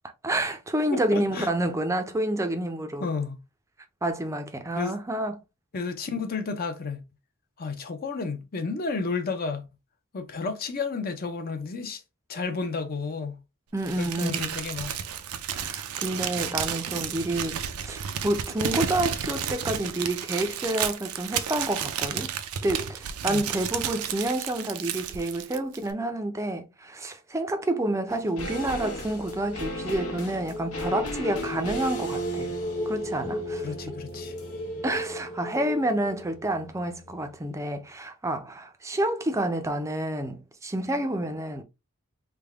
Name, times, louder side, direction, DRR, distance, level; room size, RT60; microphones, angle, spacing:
voice 1, 0.2-3.1 4.0-5.4 13.7-14.5 15.6-22.3 22.6-32.5 32.9-33.7 34.8-41.6, right 1 dB, 15° right, 0.5 m, -29 dB
voice 2, 0.9-1.5 3.0-3.4 4.7-5.0 5.7-7.0 7.6-9.7 10.1-12.0 12.3-13.4 14.0-15.0 23.3-23.4 33.6-34.3, left 4 dB, 45° left, 0.6 m, -32 dB
Crumpling crinkling, 13.8-25.9, right 8 dB, 85° right, 0.5 m, -32 dB
sound 1, 27.9-36.8, left 2 dB, 20° left, 0.9 m, -37 dB
sound 2, 28.1-37.5 37.7-37.8, right 1 dB, 85° left, 1.0 m, -37 dB
3.4 x 2.2 x 3.4 m
head